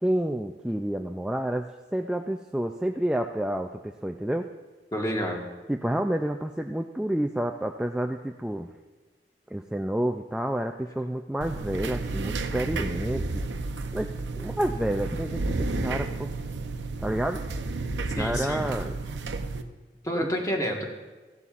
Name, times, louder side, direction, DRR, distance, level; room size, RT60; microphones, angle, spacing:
voice 1, 0.0-4.5 5.7-8.7 9.5-13.4 13.9-14.1 14.4-16.3 17.0-17.4 18.1-18.9 20.1-20.3, right 1 dB, 5° right, 4 dB, 0.3 m, -29 dB
voice 2, 4.9-5.4 18.0-18.7 20.0-20.8, equal, 20° left, 0 dB, 1.4 m, -29 dB
sound 1, 11.4-19.6, right 3 dB, 90° right, 0.7 m, -32 dB
15.0 x 11.0 x 2.5 m, 1.3 s
head